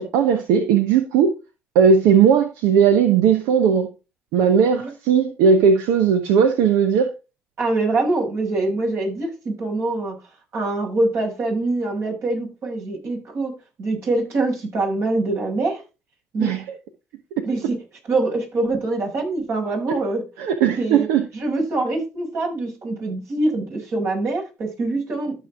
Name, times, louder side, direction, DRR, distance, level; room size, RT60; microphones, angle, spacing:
voice 1, 0.0-1.3 1.7-3.9 4.3-7.1 16.4-16.6 20.4-21.2, right 7 dB, 90° right, 1.0 m, -17 dB
voice 2, 7.6-10.2 10.5-13.5 13.8-15.8 16.3-16.6 17.4-17.8 18.0-20.2 20.8-21.1 21.3-25.3, right 2 dB, 65° right, 5.6 m, -24 dB
13.0 x 6.4 x 3.6 m
supercardioid pair, 65°, 5 cm